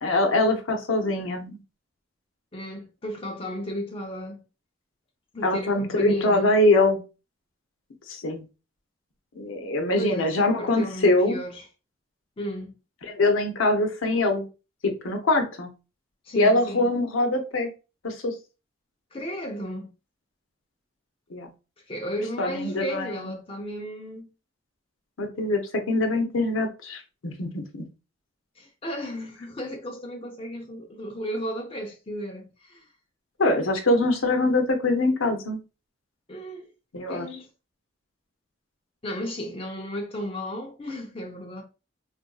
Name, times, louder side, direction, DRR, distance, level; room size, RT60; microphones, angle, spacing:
voice 1, 0.0-1.6 5.4-7.0 8.1-8.4 9.4-11.4 13.1-14.5 14.8-15.7 16.3-17.7 18.0-18.3 21.3-21.5 22.4-23.3 25.2-27.8 33.4-35.6 36.9-37.3, left 2 dB, 85° left, 0.7 m, -23 dB
voice 2, 2.5-4.4 5.3-6.5 9.9-11.6 12.4-12.7 16.2-16.9 19.1-19.9 21.9-24.3 28.6-32.9 36.3-36.7 37.1-37.5 39.0-41.6, equal, 30° left, 0.6 m, -34 dB
3.7 x 2.5 x 2.3 m
head